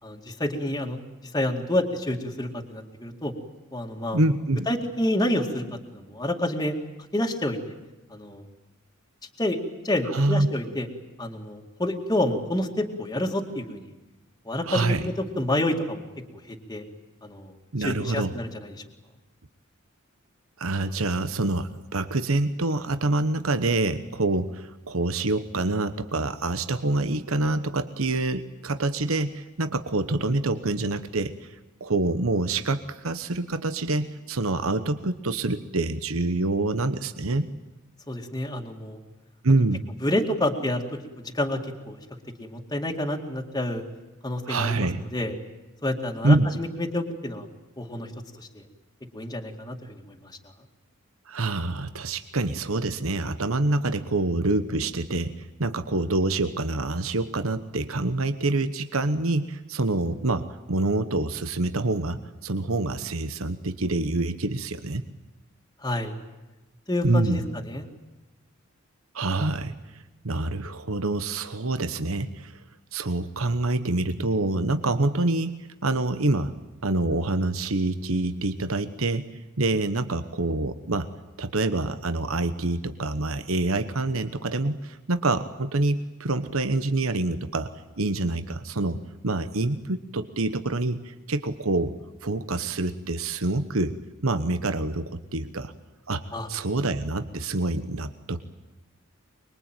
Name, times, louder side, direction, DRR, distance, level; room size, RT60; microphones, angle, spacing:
voice 1, 0.0-1.0 1.3-3.3 3.7-4.2 4.7-5.6 5.9-6.7 7.1-7.7 8.1-8.4 9.4-9.6 9.8-10.9 11.2-13.9 14.5-16.1 16.5-16.8 17.2-17.5 17.8-18.7 38.1-39.0 40.0-40.8 41.3-42.0 42.4-43.8 44.2-45.3 45.8-47.5 47.8-48.1 48.4-48.6 49.1-50.0 65.8-66.1 66.9-67.9 96.3-96.5, left 1 dB, 20° left, 1 dB, 2.3 m, -28 dB
voice 2, 4.1-4.7 10.0-10.5 14.6-15.1 17.7-18.3 20.6-37.5 39.4-39.9 44.5-45.0 46.2-46.5 51.3-65.0 67.0-67.4 69.1-72.6 72.9-76.5 76.8-79.3 79.6-81.1 81.4-87.7 88.0-91.9 92.2-94.0 94.2-95.7 96.1-98.4, right 2 dB, 75° right, 10 dB, 1.2 m, -26 dB
25.0 x 22.5 x 9.1 m, 1.1 s
head